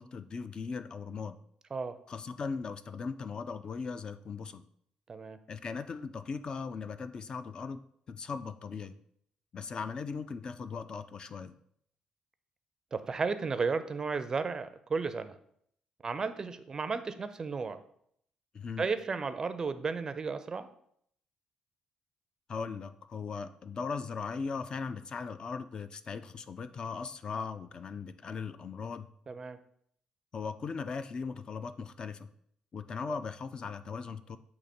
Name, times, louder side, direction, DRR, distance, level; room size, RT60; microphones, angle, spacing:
voice 1, 0.0-1.4 2.1-4.6 5.5-7.8 8.1-9.0 9.5-11.5 18.5-18.8 22.5-29.1 30.3-32.3 32.7-34.4, left 5 dB, 40° left, 11 dB, 0.3 m, -38 dB
voice 2, 12.9-15.4 16.0-17.8 18.8-20.7 29.3-29.6, right 4 dB, 30° right, 11 dB, 0.4 m, -33 dB
7.8 x 2.9 x 4.2 m, 0.68 s
cardioid pair, 125°, 2 cm